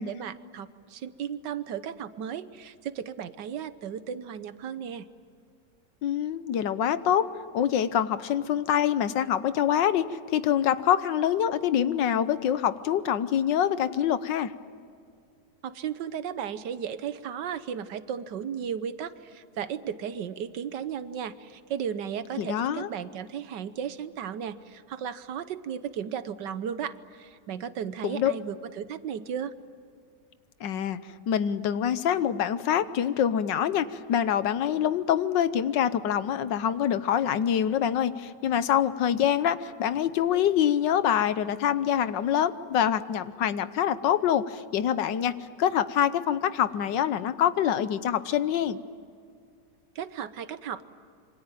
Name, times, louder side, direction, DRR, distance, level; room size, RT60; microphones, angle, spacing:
voice 1, 0.0-5.1 15.6-29.5 49.9-50.8, right 8 dB, 70° right, 13 dB, 1.5 m, -35 dB
voice 2, 6.0-14.5 22.4-22.9 28.0-28.3 30.6-31.0 31.3-45.3 45.6-48.8, left 9 dB, 75° left, 14 dB, 1.5 m, -25 dB
27.0 x 24.5 x 9.1 m, 2.3 s
omnidirectional pair, 2.0 m